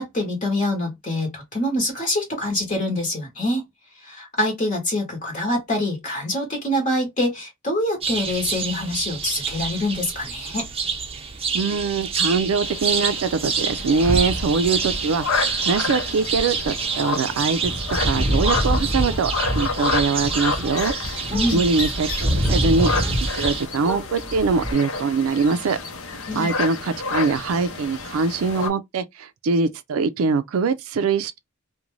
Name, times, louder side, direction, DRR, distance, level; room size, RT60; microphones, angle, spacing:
voice 1, 0.0-3.7 3.9-10.7 21.3-21.6 26.3-26.5, left 1 dB, 35° left, 0.9 m, -25 dB
sound 1, 8.0-23.7, right 5 dB, 30° right, 0.5 m, -28 dB
voice 2, 11.5-17.7 18.0-20.9 21.5-22.1 22.4-22.9 23.3-25.8 26.4-31.4, right 4 dB, 90° right, 0.4 m, -23 dB
sound 2, 12.6-28.7, left 4 dB, 75° left, 0.7 m, -30 dB
sound 3, 17.6-23.6 23.8-24.7, equal, ahead, 0.9 m, -26 dB
2.5 x 2.2 x 3.0 m
head